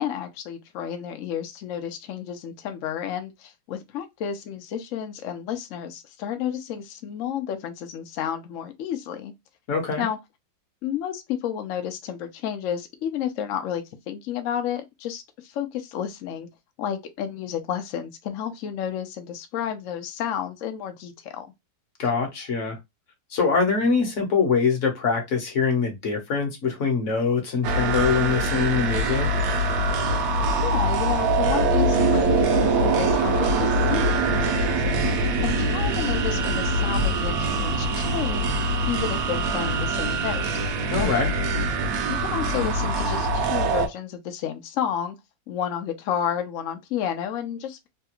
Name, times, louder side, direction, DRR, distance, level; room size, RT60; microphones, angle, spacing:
voice 1, 0.0-9.3 10.0-10.2 10.8-16.5 16.8-21.5 30.5-35.0 35.4-38.5 38.9-40.4 41.0-41.2 42.0-45.2 45.5-47.9, left 9 dB, 75° left, 0.7 m, -31 dB
voice 2, 9.7-10.0 22.0-22.8 23.3-29.3 40.9-41.3, left 5 dB, 50° left, 1.0 m, -23 dB
sound 1, 27.6-43.9, right 2 dB, 65° right, 0.9 m, -23 dB
3.3 x 2.3 x 2.9 m
omnidirectional pair, 2.1 m